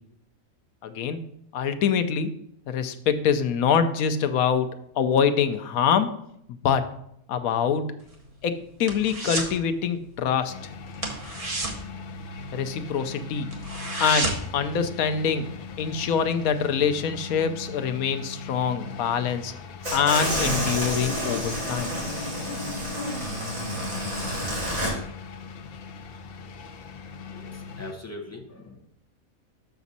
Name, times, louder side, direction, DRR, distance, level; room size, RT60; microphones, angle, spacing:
voice 1, 0.8-1.2 1.5-2.4 2.7-6.1 6.5-6.9 7.3-7.9 8.4-8.5 8.8-10.5 12.5-13.5 14.0-15.5 15.8-19.5 19.9-21.9, left 7 dB, 85° left, 9 dB, 1.1 m, -25 dB
sound 1, 8.0-9.6 9.9-10.2 10.4-10.6 10.9-12.8 13.2-13.3 13.5-14.6 15.0-15.1, right 2 dB, 30° right, 1.1 m, -31 dB
sound 2, 10.5-27.9, left 4 dB, 60° left, 0.6 m, -40 dB
sound 3, 19.8-24.9, equal, 75° right, 3.6 m, -29 dB
voice 2, 27.3-28.9, left 1 dB, 15° left, 0 dB, 0.7 m, -41 dB
6.8 x 6.1 x 4.1 m, 0.73 s
omnidirectional pair, 1.4 m